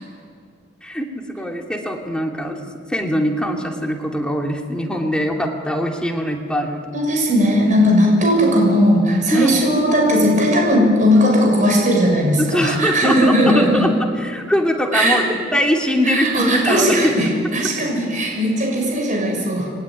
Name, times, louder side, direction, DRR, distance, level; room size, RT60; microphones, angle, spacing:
voice 1, 0.8-2.6 2.9-7.0 9.3-9.5 12.4-17.1, equal, 5° left, 1 dB, 2.7 m, -22 dB
voice 2, 6.9-13.9 14.9-15.2 16.0-19.7, equal, 45° right, 0 dB, 6.7 m, -17 dB
27.5 x 22.0 x 9.8 m, 2.1 s
head